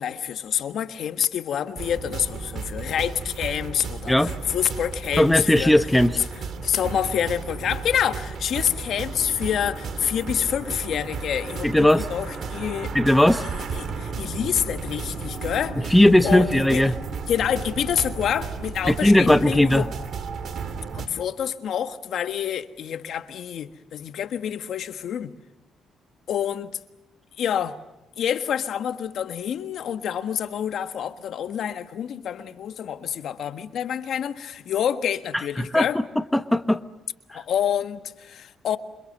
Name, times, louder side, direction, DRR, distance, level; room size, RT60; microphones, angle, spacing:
voice 1, 0.0-5.7 6.4-13.0 13.4-15.9 16.2-16.8 17.3-19.9 20.9-25.3 26.3-26.7 27.4-27.8 28.2-36.0 37.3-38.8, left 9 dB, 70° left, 1.5 m, -27 dB
sound 1, 1.8-21.1, right 5 dB, 60° right, 2.9 m, -34 dB
voice 2, 5.2-6.2 11.6-12.0 12.9-13.4 15.9-16.9 18.9-19.9 35.6-35.9 36.3-36.8, left 1 dB, 5° left, 1.1 m, -18 dB
sound 2, 9.0-19.0, left 3 dB, 20° left, 2.9 m, -45 dB
28.0 x 25.5 x 6.7 m
cardioid pair, 90°, 0 cm